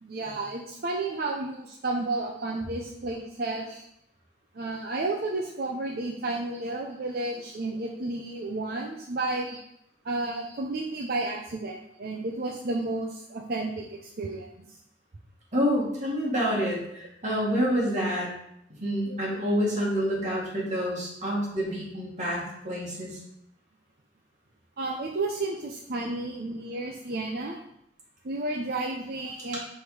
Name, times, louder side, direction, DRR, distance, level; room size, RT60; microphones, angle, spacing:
voice 1, 0.0-3.7 4.5-9.6 10.0-14.8 24.8-27.6 28.2-29.6, right 2 dB, 60° right, 0 dB, 0.6 m, -32 dB
voice 2, 15.5-18.3 18.8-23.2 29.4-29.6, equal, 40° right, -5 dB, 1.8 m, -28 dB
6.1 x 3.5 x 4.8 m, 0.77 s
head